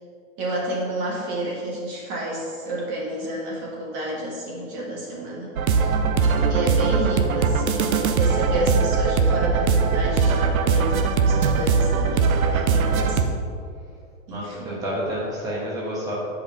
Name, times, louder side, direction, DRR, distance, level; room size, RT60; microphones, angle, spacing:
voice 1, 0.4-5.9 6.5-13.2 14.3-14.8, right 1 dB, 30° right, -3 dB, 1.4 m, -30 dB
sound 1, 5.6-13.2, right 5 dB, 90° right, 0.9 m, -20 dB
voice 2, 12.7-13.1 14.3-16.1, equal, 10° right, -8 dB, 1.3 m, -31 dB
8.2 x 5.3 x 4.4 m, 2.3 s
hypercardioid pair, 160°, 41 cm